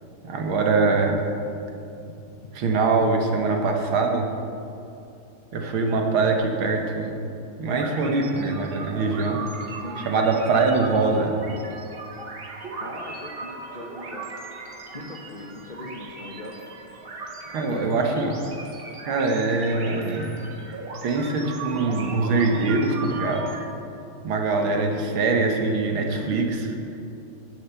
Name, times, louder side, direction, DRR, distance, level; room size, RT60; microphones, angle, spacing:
voice 1, 0.2-1.3 2.5-4.3 5.5-7.2 7.6-9.4 10.1-11.4 17.5-18.3 19.1-20.4 21.0-23.5 24.2-26.7, right 3 dB, 70° right, 3 dB, 1.9 m, -23 dB
sound 1, 7.7-23.7, right 4 dB, 90° right, 0.5 m, -38 dB
voice 2, 12.8-14.3 14.9-16.6 17.5-18.4 24.9-25.0 26.1-26.4, left 1 dB, 40° left, -2 dB, 0.6 m, -40 dB
10.0 x 7.3 x 7.0 m, 2.7 s
omnidirectional pair, 2.4 m